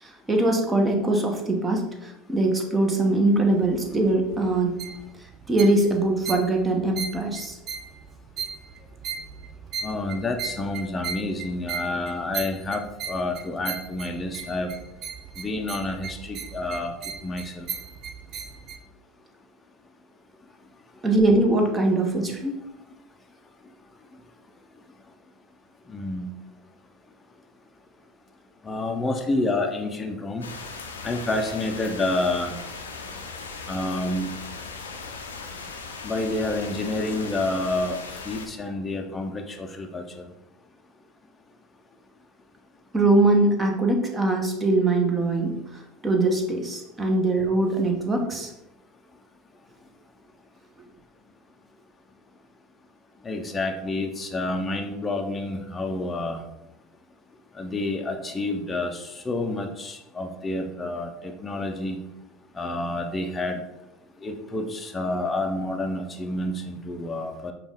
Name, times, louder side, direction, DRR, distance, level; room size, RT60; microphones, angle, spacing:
voice 1, 0.0-4.8 5.5-7.6 21.0-22.6 42.9-48.5, right 2 dB, 20° right, 2 dB, 0.9 m, -22 dB
sound 1, 3.4-18.8, right 6 dB, 45° right, 0.4 m, -37 dB
voice 2, 9.8-14.7 15.4-16.9 17.2-17.7 25.9-26.3 28.6-30.5 31.0-32.6 33.7-34.3 36.0-38.0 38.3-40.2 53.2-56.4 57.6-62.0 62.6-63.6 64.2-67.5, left 2 dB, 20° left, 3 dB, 0.6 m, -29 dB
sound 2, 30.4-38.5, left 4 dB, 85° left, 0.5 m, -38 dB
5.2 x 2.4 x 3.5 m, 0.91 s
hypercardioid pair, 75°, 0 cm